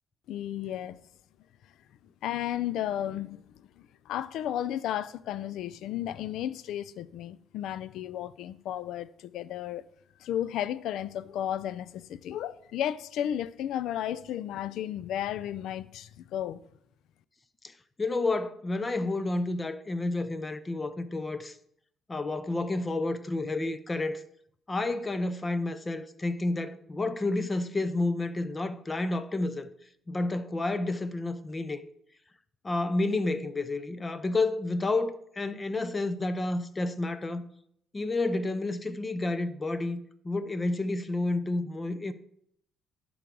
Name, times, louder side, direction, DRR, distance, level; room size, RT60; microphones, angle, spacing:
voice 1, 0.3-1.0 2.2-9.9 10.2-16.6, left 11 dB, 75° left, 0.4 m, -33 dB
voice 2, 18.0-21.6 22.1-24.2 24.7-29.7 30.1-31.8 32.6-37.4 37.9-42.1, left 2 dB, 25° left, 0.6 m, -30 dB
11.5 x 3.8 x 4.7 m
cardioid pair, 85°, 0 cm